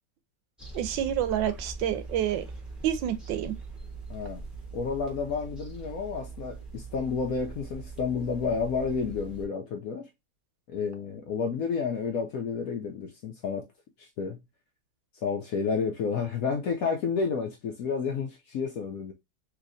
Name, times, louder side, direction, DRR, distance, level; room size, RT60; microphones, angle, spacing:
sound 1, 0.6-9.5, right 4 dB, ahead, 0.5 m, -42 dB
voice 1, 0.7-2.4 2.8-3.6, right 11 dB, 80° right, 1.3 m, -28 dB
voice 2, 4.1-4.4 4.7-10.1 10.7-13.7 14.0-14.4 15.2-19.1, left 5 dB, 70° left, 0.8 m, -30 dB
3.4 x 2.9 x 2.5 m
omnidirectional pair, 2.0 m